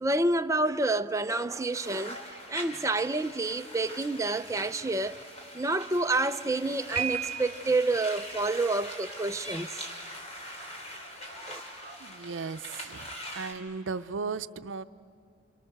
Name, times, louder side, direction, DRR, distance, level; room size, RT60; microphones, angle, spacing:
voice 1, 0.0-2.2 2.5-5.2 5.5-9.7 11.5-11.6, right 2 dB, 15° right, 0.5 m, -28 dB
sound 1, 1.7-13.5, equal, 35° left, 3.3 m, -42 dB
Piano, 6.9-7.9, right 9 dB, 40° right, 3.1 m, -33 dB
voice 2, 12.0-13.1 13.3-14.8, right 4 dB, 85° right, 0.6 m, -36 dB
28.5 x 28.0 x 6.6 m
head